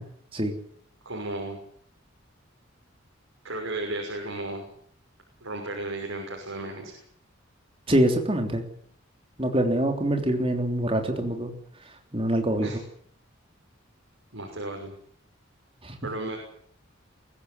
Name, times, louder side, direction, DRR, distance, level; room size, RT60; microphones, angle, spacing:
voice 1, 1.0-1.6 3.4-4.7 5.4-7.0 12.6-12.8 14.3-14.9 16.0-16.4, right 2 dB, 85° right, 0 dB, 6.1 m, -34 dB
voice 2, 7.9-8.6 9.4-11.5 12.1-12.7 15.8-15.9, right 1 dB, 25° right, 4 dB, 3.4 m, -24 dB
23.0 x 15.5 x 9.7 m, 0.65 s
head